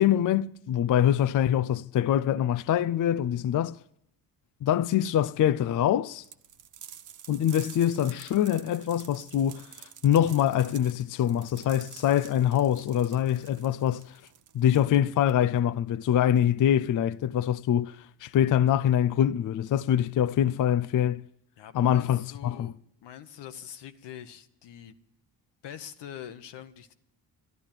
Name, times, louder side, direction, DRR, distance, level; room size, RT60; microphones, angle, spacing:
voice 1, 0.0-3.8 4.6-6.2 7.3-14.2 14.5-21.3 21.7-22.7, left 10 dB, 50° left, 0.5 m, -24 dB
sound 1, 6.2-15.6, right 9 dB, 50° right, 0.7 m, -49 dB
voice 2, 21.6-22.7 23.0-25.0 25.6-26.9, left 10 dB, 85° left, 1.1 m, -44 dB
12.5 x 10.5 x 8.9 m
cardioid pair, 95°, 41 cm